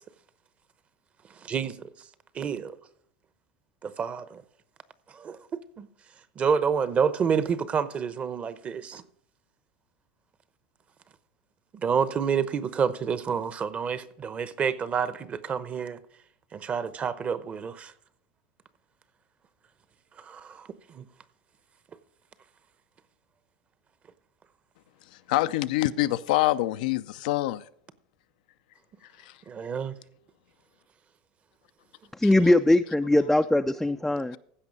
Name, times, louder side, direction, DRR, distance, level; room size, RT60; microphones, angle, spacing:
voice 1, 1.4-1.8 2.3-2.8 3.8-4.4 5.1-5.9 6.4-9.0 11.8-16.0 16.5-17.9 20.2-21.1 29.5-29.9, right 6 dB, 30° right, 0.8 m, -28 dB
voice 2, 25.3-27.6 29.2-29.3 32.2-32.3, left 16 dB, 80° left, 0.5 m, -25 dB
voice 3, 32.2-34.4, left 1 dB, 5° left, 0.3 m, -21 dB
15.5 x 5.3 x 5.2 m
supercardioid pair, 115°, 4 cm